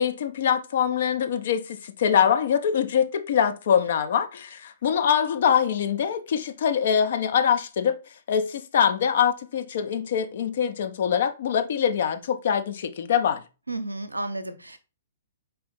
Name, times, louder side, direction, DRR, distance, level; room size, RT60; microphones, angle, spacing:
voice 1, 0.0-8.0 8.3-13.4, left 8 dB, 50° left, 0.5 m, -24 dB
voice 2, 13.7-14.8, right 2 dB, 80° right, 0.5 m, -32 dB
4.4 x 2.9 x 3.3 m
figure-of-eight pair, 115°, 0 cm